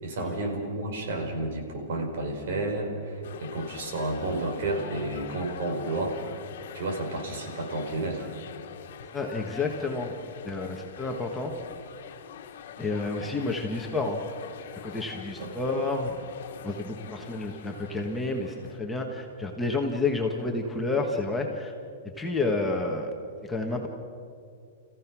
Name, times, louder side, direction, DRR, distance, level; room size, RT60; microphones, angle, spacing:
voice 1, 0.0-6.2 6.7-8.3 15.4-15.5, right 2 dB, 60° right, 2 dB, 4.7 m, -31 dB
sound 1, 3.2-18.8, left 8 dB, 65° left, 1.5 m, -44 dB
voice 2, 9.1-10.1 10.4-11.5 12.8-14.2 14.8-16.1 16.6-21.7 22.2-23.1 23.4-23.9, left 3 dB, 5° left, 0 dB, 1.5 m, -30 dB
29.5 x 15.5 x 6.2 m, 2.4 s
supercardioid pair, 165°, 0 cm